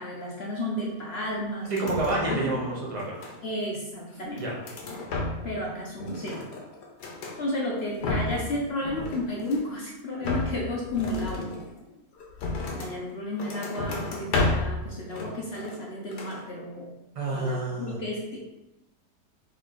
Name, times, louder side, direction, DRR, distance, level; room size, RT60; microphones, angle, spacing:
voice 1, 0.0-1.8 2.3-2.4 3.4-4.5 5.4-6.4 7.4-11.5 12.7-16.9 17.3-18.4, left 1 dB, 55° left, -3 dB, 0.7 m, -32 dB
sound 1, 1.6-2.6 2.9-3.7 4.2-5.6 5.9-7.4 7.8-8.5 8.8-9.7 10.2-13.0 13.4-14.8 15.1-16.4, left 2 dB, 75° left, 1.3 m, -32 dB
voice 2, 1.7-3.2 4.4-4.6 17.1-18.0, right 2 dB, 30° right, -3 dB, 0.7 m, -28 dB
3.6 x 3.1 x 4.0 m, 0.97 s
omnidirectional pair, 1.8 m